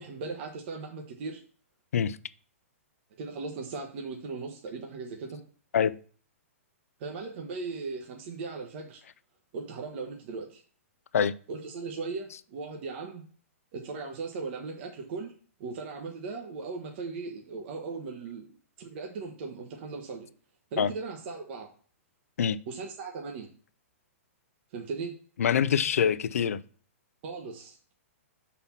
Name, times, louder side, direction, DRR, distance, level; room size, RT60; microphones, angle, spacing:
voice 1, 0.0-1.4 3.2-5.4 7.0-9.0 9.5-10.6 11.5-13.2 13.7-15.3 15.6-18.5 18.8-20.3 20.7-21.7 22.7-23.5 24.7-25.1 27.2-27.9, right 4 dB, 50° right, 1.1 m, -38 dB
voice 2, 25.4-26.6, left 8 dB, 80° left, 0.4 m, -25 dB
5.6 x 4.2 x 5.6 m
hypercardioid pair, 140°, 8 cm